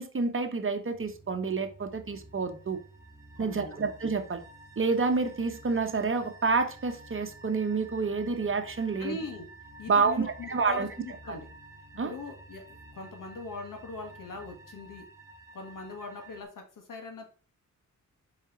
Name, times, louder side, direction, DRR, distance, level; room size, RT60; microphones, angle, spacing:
voice 1, 0.0-2.8 3.4-4.4 4.8-9.2 9.9-10.9 11.3-11.4 12.0-12.1, right 4 dB, 40° right, 1.2 m, -28 dB
sound 1, 0.9-16.4, right 2 dB, 10° right, 1.8 m, -51 dB
voice 2, 3.4-3.9 9.0-9.5 9.8-11.5 12.0-12.6 12.9-15.1 15.5-17.3, left 3 dB, 90° left, 1.8 m, -40 dB
5.5 x 5.1 x 4.5 m
cardioid pair, 85°, 31 cm